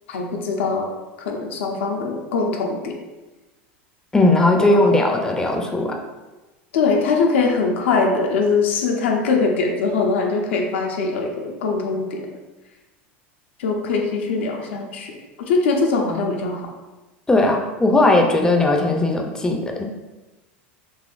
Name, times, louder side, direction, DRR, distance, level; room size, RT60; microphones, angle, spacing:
voice 1, 0.1-0.9 1.2-3.0 4.6-5.0 6.7-12.3 13.6-15.1 15.5-16.7, left 4 dB, 80° left, 1 dB, 0.6 m, -22 dB
voice 2, 4.1-6.0 17.3-19.9, left 2 dB, 10° left, 2 dB, 0.4 m, -18 dB
4.0 x 2.7 x 2.4 m, 1.1 s
hypercardioid pair, 100°, 6 cm